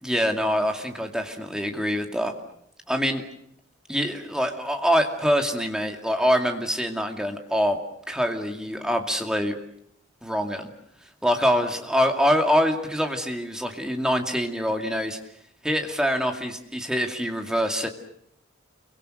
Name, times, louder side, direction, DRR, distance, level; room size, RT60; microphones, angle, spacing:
voice 1, 0.0-2.3 2.9-3.2 3.9-7.8 8.1-9.5 10.2-10.7 11.2-15.2 15.6-17.9, equal, 5° right, 4 dB, 2.4 m, -24 dB
30.0 x 24.0 x 6.6 m, 0.70 s
head